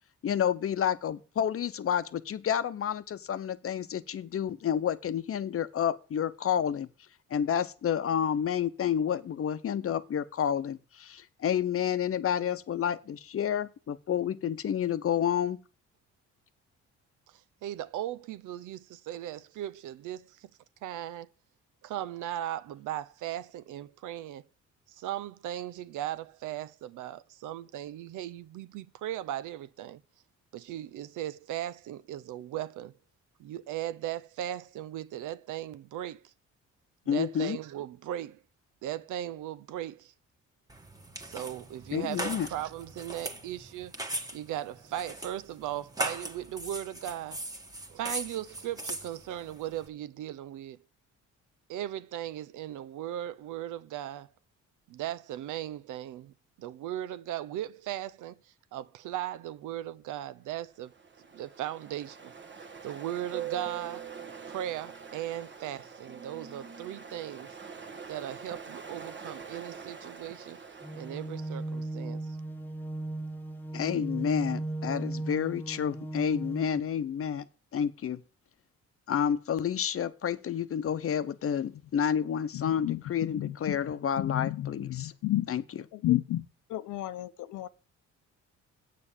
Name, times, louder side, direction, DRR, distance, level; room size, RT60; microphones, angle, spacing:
voice 1, 0.2-6.9 7.3-15.6 37.1-37.6 41.9-42.5 73.7-77.4 77.7-78.2 79.1-85.1 85.5-85.6, left 8 dB, 50° left, 0.8 m, -30 dB
voice 2, 17.3-20.5 20.8-21.3 21.8-24.5 24.9-30.0 30.5-32.9 33.4-36.3 37.1-38.4 38.8-40.1 41.3-43.9 44.3-47.4 47.9-50.8 51.7-54.3 54.9-58.4 58.7-60.9 61.3-62.3 62.8-64.1 64.5-67.5 68.1-70.6 70.9-72.4, right 12 dB, 80° right, 0.6 m, -37 dB
sound 1, 40.7-49.9, right 1 dB, 10° right, 1.4 m, -39 dB
Ocean, 60.7-71.8, right 7 dB, 40° right, 1.3 m, -44 dB
sound 2, 70.8-76.8, right 2 dB, 5° left, 0.8 m, -36 dB
voice 3, 82.5-85.5 85.9-86.4 86.7-87.7, left 14 dB, 80° left, 0.8 m, -32 dB
8.5 x 6.8 x 7.1 m
cardioid pair, 90°, 30 cm